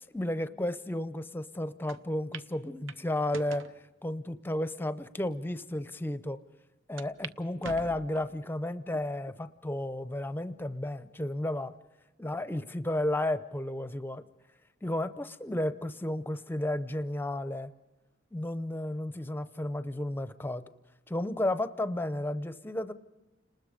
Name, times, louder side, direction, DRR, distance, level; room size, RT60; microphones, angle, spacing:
voice 1, 0.1-3.6 4.0-6.4 6.9-11.7 12.2-14.2 14.8-17.7 18.3-20.6 21.1-22.9, left 1 dB, 10° left, 12 dB, 0.6 m, -33 dB
sound 1, 1.9-2.0 2.3-2.5 2.9-3.7 4.4-4.5 5.2-5.3 5.6-5.7 7.0-7.4 7.6-8.4 8.9-9.4 9.9-10.0 11.2-11.6, right 5 dB, 70° right, 0.8 m, -44 dB
30.0 x 20.0 x 5.1 m, 1.1 s
head